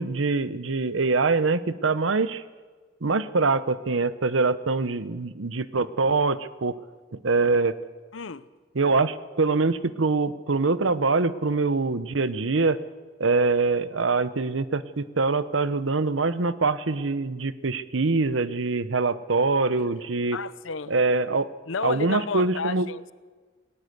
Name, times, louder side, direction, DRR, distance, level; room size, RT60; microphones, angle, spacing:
voice 1, 0.0-2.4 3.0-6.8 7.2-7.8 8.7-12.8 13.2-20.4 20.9-21.5 21.8-22.9, right 3 dB, 75° right, 0.9 m, -24 dB
voice 2, 8.1-8.4 20.3-20.9 21.7-23.1, left 5 dB, 75° left, 0.8 m, -32 dB
19.0 x 18.5 x 8.2 m
head